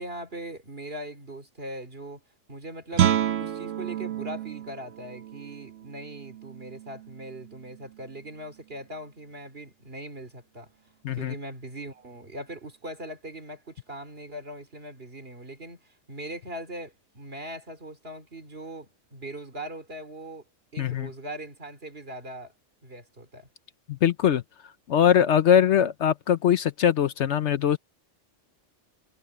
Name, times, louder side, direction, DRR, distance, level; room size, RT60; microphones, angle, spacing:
voice 1, 0.0-2.2 2.5-3.1 3.4-10.7 11.1-20.4 20.7-22.5 22.8-23.5, right 1 dB, 50° right, 3.7 m, -40 dB
Guitar, 2.9-8.5, right 11 dB, 80° right, 1.1 m, -30 dB
voice 2, 20.8-21.1 23.9-24.4 24.9-27.8, left 9 dB, 65° left, 1.0 m, -21 dB
omnidirectional pair, 1.3 m